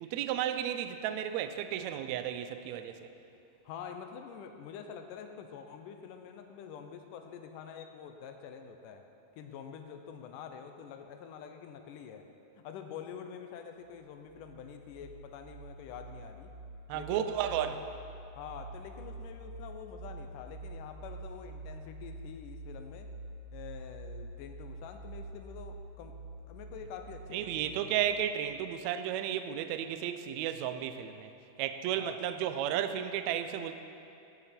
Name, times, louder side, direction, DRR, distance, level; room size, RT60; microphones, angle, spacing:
voice 1, 0.0-3.1 16.9-17.7 27.3-31.3 31.6-33.7, right 10 dB, 85° right, 9 dB, 1.6 m, -33 dB
voice 2, 3.6-9.0 9.3-12.3 12.6-16.5 16.9-17.8 18.3-23.1 23.5-28.0 32.0-32.2, left 7 dB, 80° left, 6 dB, 2.3 m, -46 dB
sound 1, 13.9-28.4, right 2 dB, 55° right, 2.5 m, -47 dB
16.5 x 8.9 x 4.4 m, 2.7 s
omnidirectional pair, 3.8 m